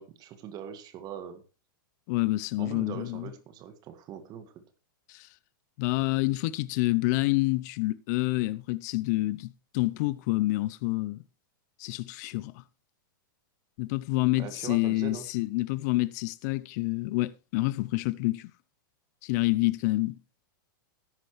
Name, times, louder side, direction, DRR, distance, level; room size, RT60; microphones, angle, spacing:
voice 1, 0.0-1.4 2.6-4.5 14.4-15.3, right 9 dB, 35° right, 1.7 m, -41 dB
voice 2, 2.1-3.2 5.1-5.3 5.8-11.2 11.8-12.6 13.8-18.5 19.2-20.2, left 20 dB, 50° left, 0.6 m, -28 dB
13.0 x 11.0 x 3.2 m
hypercardioid pair, 120°, 11 cm